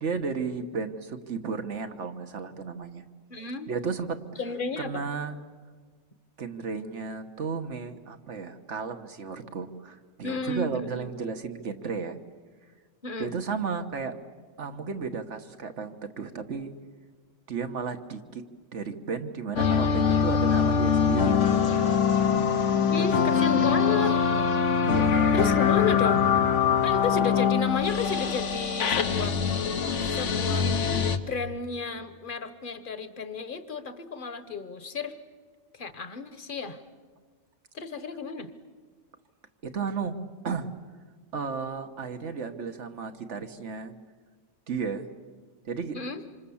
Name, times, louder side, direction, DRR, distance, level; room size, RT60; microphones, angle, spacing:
voice 1, 0.0-3.0 3.4-4.2 4.8-5.4 6.4-12.2 13.2-14.2 14.6-16.7 17.5-18.4 18.7-21.6 23.0-23.1 24.8-25.2 39.6-40.2 40.4-40.7 41.3-43.9 44.7-45.1 45.7-46.0, right 5 dB, 75° right, 7 dB, 1.6 m, -33 dB
voice 2, 3.3-3.7 4.4-5.1 10.2-11.1 13.0-13.3 22.9-24.2 25.3-26.3 26.8-29.4 30.1-30.7 31.3-35.2 35.7-36.8 37.7-38.5 45.9-46.2, left 5 dB, 45° left, 11 dB, 1.3 m, -32 dB
sound 1, 19.6-31.2, left 6 dB, 80° left, 1.4 m, -23 dB
27.0 x 26.5 x 7.1 m, 1.5 s
omnidirectional pair, 1.2 m